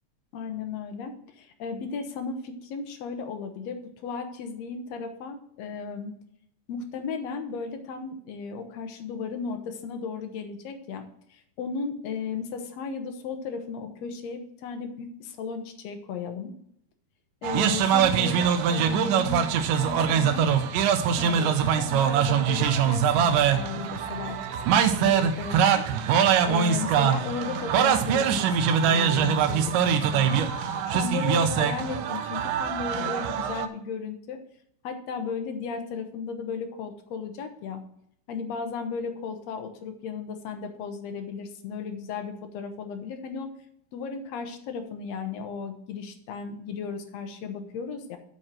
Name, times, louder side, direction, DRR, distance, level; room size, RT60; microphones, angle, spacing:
voice 1, 0.3-6.1 6.7-11.0 11.3-16.5 17.4-19.5 19.8-20.5 21.2-24.4 24.8-25.8 26.5-30.5 30.9-34.4 34.8-37.8 38.3-43.5 43.9-48.2, left 5 dB, 75° left, 6 dB, 1.6 m, -35 dB
sound 1, 17.4-33.7, right 8 dB, 80° right, 2.0 m, -23 dB
9.0 x 4.4 x 7.4 m, 0.71 s
omnidirectional pair, 4.2 m